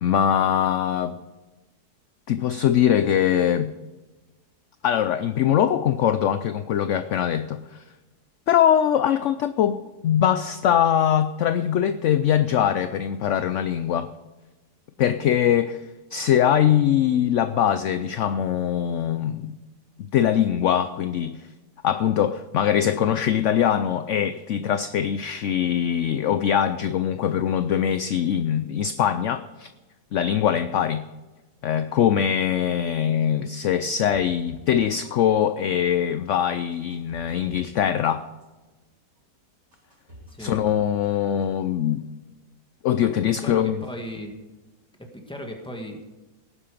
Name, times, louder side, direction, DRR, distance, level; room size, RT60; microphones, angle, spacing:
voice 1, 0.0-1.2 2.3-3.7 4.8-7.8 8.5-14.1 15.0-15.8 16.1-19.5 20.0-21.5 21.8-29.7 30.1-31.0 31.6-38.2 40.4-42.1 42.8-43.8, left 9 dB, 65° left, 12 dB, 0.7 m, -22 dB
sound 1, 33.7-34.8 35.0-35.7 36.2-36.3 36.7-37.8 38.0-38.7 39.2-39.3 39.7-40.7 41.0-41.7 42.0-42.1, left 1 dB, 55° right, 4.9 m, -48 dB
voice 2, 43.4-44.3 45.0-46.1, equal, 5° left, 2 dB, 1.7 m, -37 dB
18.0 x 9.9 x 5.1 m, 1.1 s
omnidirectional pair, 1.8 m